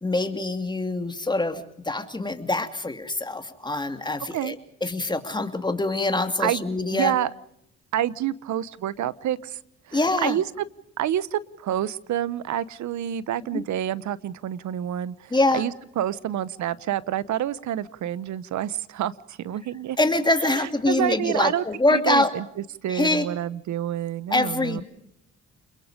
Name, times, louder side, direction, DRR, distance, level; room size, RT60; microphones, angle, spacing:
voice 1, 0.0-4.6 4.8-7.1 9.9-10.4 13.5-13.6 15.3-15.6 20.0-22.3 22.9-23.3 24.3-24.8, left 2 dB, 15° left, 7 dB, 2.7 m, -24 dB
voice 2, 6.9-7.3 7.9-9.6 9.9-10.5 11.0-20.0 20.4-22.4 22.8-24.8, right 11 dB, 70° right, 18 dB, 1.0 m, -28 dB
29.0 x 21.5 x 5.1 m, 0.74 s
cardioid pair, 90°, 30 cm